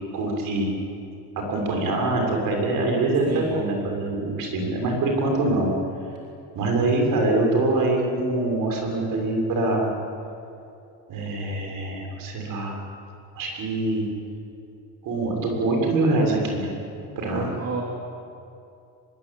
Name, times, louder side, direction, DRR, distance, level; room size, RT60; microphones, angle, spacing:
voice 1, 0.1-0.7 1.5-5.7 6.5-9.9 11.1-12.7 13.3-14.1 15.0-16.8 17.1-17.5, right 2 dB, 65° right, 1 dB, 6.8 m, -24 dB
voice 2, 17.3-17.8, right 5 dB, 45° right, -1 dB, 3.4 m, -29 dB
24.5 x 23.0 x 9.0 m, 2.6 s
cardioid pair, 145°, 36 cm